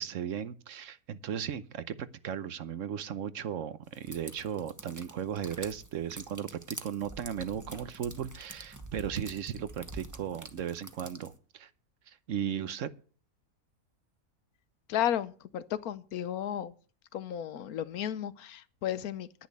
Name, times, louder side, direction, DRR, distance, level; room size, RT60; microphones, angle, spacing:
voice 1, 0.0-11.7 12.1-12.9, right 8 dB, 65° right, 1.1 m, -36 dB
sound 1, 3.9-11.4, right 2 dB, 15° right, 1.1 m, -46 dB
voice 2, 14.9-16.7 17.1-19.5, left 11 dB, 90° left, 1.3 m, -33 dB
10.5 x 10.5 x 5.3 m
omnidirectional pair, 1.5 m